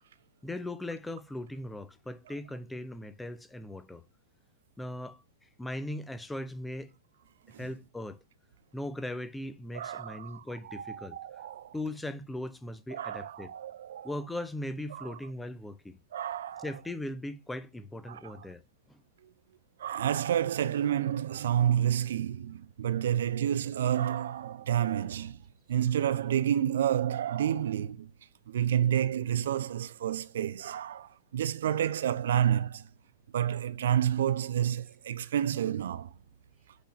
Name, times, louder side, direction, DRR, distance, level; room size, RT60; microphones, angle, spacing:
voice 1, 0.4-4.0 4.8-6.9 7.5-8.2 8.7-11.2 11.7-13.5 14.0-16.0 16.6-18.6 18.9-19.0 35.2-35.3, left 1 dB, 5° left, 0.5 m, -39 dB
voice 2, 9.7-11.7 12.9-14.1 14.9-15.1 16.1-16.7 18.1-18.3 19.8-25.4 25.7-28.1 28.5-32.9 33.3-36.1, right 10 dB, 60° right, 0.4 m, -29 dB
5.1 x 3.8 x 5.7 m
figure-of-eight pair, 100°, 0 cm